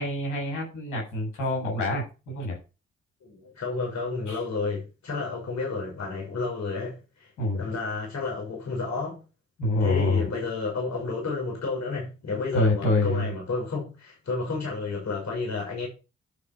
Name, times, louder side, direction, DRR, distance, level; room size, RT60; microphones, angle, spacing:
voice 1, 0.0-2.6 4.3-4.4 7.4-7.6 9.6-10.2 12.5-13.3, left 2 dB, 85° left, 7.5 m, -26 dB
voice 2, 3.2-9.2 9.8-15.9, left 3 dB, 70° left, 6.6 m, -31 dB
11.5 x 6.1 x 6.1 m
hypercardioid pair, 45°, 29 cm